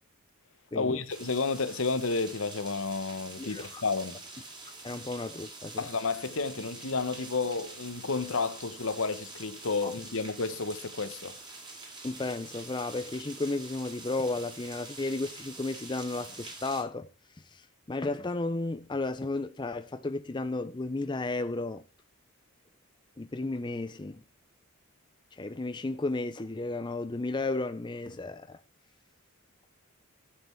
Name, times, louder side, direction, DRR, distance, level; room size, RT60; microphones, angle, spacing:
voice 1, 0.7-4.2 5.8-11.4, left 4 dB, 65° left, 1.0 m, -31 dB
sound 1, 1.1-16.8, right 3 dB, 20° right, 3.0 m, -46 dB
voice 2, 3.4-3.8 4.8-5.9 9.8-9.9 12.0-17.1 17.4-21.8 23.2-24.2 25.3-28.6, left 2 dB, 20° left, 0.5 m, -33 dB
11.5 x 7.7 x 4.4 m
head